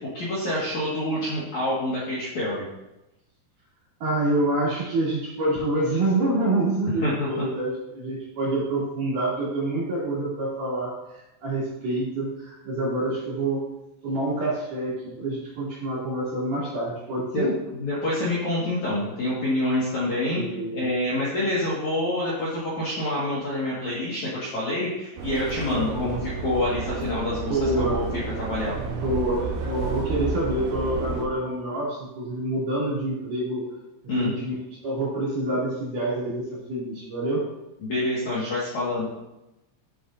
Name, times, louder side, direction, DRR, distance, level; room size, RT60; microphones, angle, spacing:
voice 1, 0.0-2.7 7.0-7.5 17.3-17.4 17.7-28.7 34.1-34.3 37.8-39.0, left 1 dB, 55° left, -7 dB, 2.3 m, -27 dB
voice 2, 4.0-13.6 14.0-17.5 20.3-20.8 25.7-26.2 27.5-28.0 28.7-33.7 34.2-34.5 34.8-37.5, right 1 dB, 45° right, -7 dB, 3.9 m, -27 dB
Subway metro underground, 25.2-31.3, right 5 dB, 75° right, 2.6 m, -31 dB
11.5 x 7.8 x 2.6 m, 0.93 s
omnidirectional pair, 5.6 m